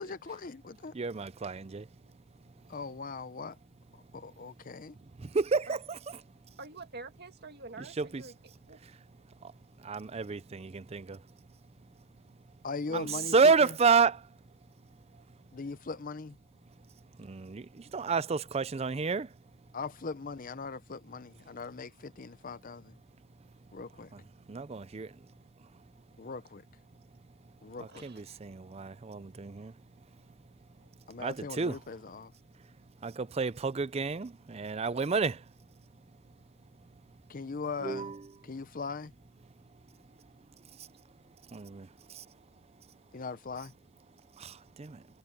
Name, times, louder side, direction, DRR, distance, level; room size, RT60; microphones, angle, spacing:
voice 1, 0.0-0.9 2.7-3.6 4.1-5.0 12.6-13.3 13.6-13.7 15.5-16.4 19.7-23.0 23.7-24.1 26.2-26.6 27.6-28.1 31.1-32.3 37.3-38.1 38.4-39.1 43.1-43.7, left 4 dB, 40° left, 0.6 m, -40 dB
voice 2, 0.9-1.9 5.2-6.2 7.8-8.3 9.4-9.5 9.8-11.2 12.9-14.2 17.2-19.3 24.1-24.2 24.5-25.1 27.8-29.7 31.2-31.8 33.0-35.4 37.8-38.3 41.5-42.2 44.4-45.0, right 5 dB, 30° right, 0.4 m, -30 dB
voice 3, 6.6-8.3 8.7-8.8 12.9-13.3 27.9-28.2, right 3 dB, 50° right, 1.9 m, -47 dB
head